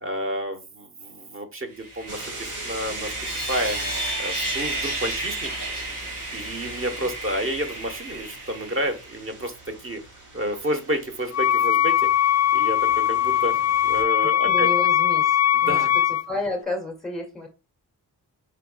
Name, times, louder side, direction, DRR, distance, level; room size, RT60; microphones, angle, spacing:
voice 1, 0.0-3.8 4.2-5.5 6.3-9.5 9.8-10.0 10.3-12.1 12.5-13.6 13.8-14.7 15.5-16.0, right 1 dB, 30° right, 7 dB, 1.2 m, -30 dB
Sawing, 1.7-9.2, right 2 dB, 70° right, 2.7 m, -32 dB
sound 1, 2.1-14.0, right 2 dB, 45° right, 2.0 m, -42 dB
Wind instrument woodwind instrument, 11.3-16.3, left 11 dB, 40° left, 0.4 m, -20 dB
voice 2, 14.5-15.8 16.3-17.5, left 2 dB, ahead, 2 dB, 2.3 m, -31 dB
4.8 x 4.5 x 2.3 m, 0.30 s
cardioid pair, 85°, 41 cm